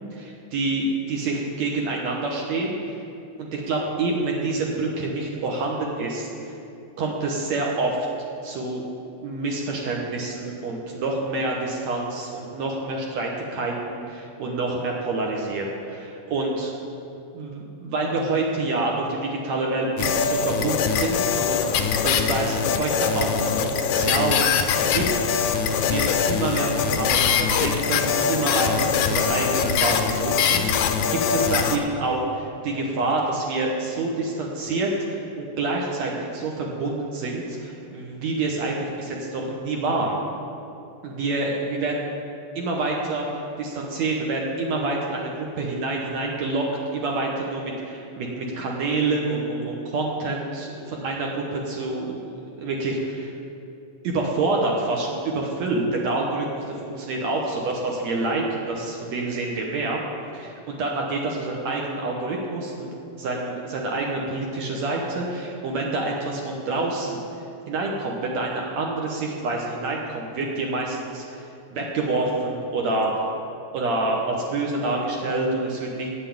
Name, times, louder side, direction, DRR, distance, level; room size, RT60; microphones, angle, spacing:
voice 1, 0.1-2.7 3.4-6.5 7.0-8.0 8.4-8.9 9.2-16.7 17.3-21.7 22.0-24.4 24.9-40.2 41.0-42.1 42.6-43.3 43.6-46.7 46.9-52.3 52.6-53.3 54.0-60.0 60.3-62.9 63.2-67.2 67.7-71.4 71.7-73.2 73.7-76.1, right 2 dB, 65° right, -1 dB, 1.9 m, -27 dB
sound 1, 20.0-31.8, left 7 dB, 80° left, 1.7 m, -23 dB
9.7 x 7.9 x 8.5 m, 2.7 s
omnidirectional pair, 4.0 m